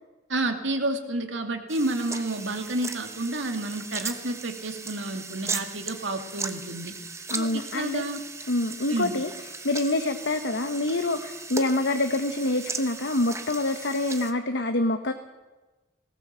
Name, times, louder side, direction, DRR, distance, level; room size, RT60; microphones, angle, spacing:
voice 1, 0.3-7.0 7.3-8.2 8.9-9.1, right 2 dB, 65° right, 6 dB, 2.3 m, -30 dB
sound 1, 1.7-14.3, right 4 dB, 15° right, 1.1 m, -37 dB
voice 2, 7.3-8.1 8.5-9.3 9.6-15.1, left 2 dB, 60° left, 7 dB, 1.1 m, -26 dB
19.5 x 18.0 x 7.4 m, 1.2 s
head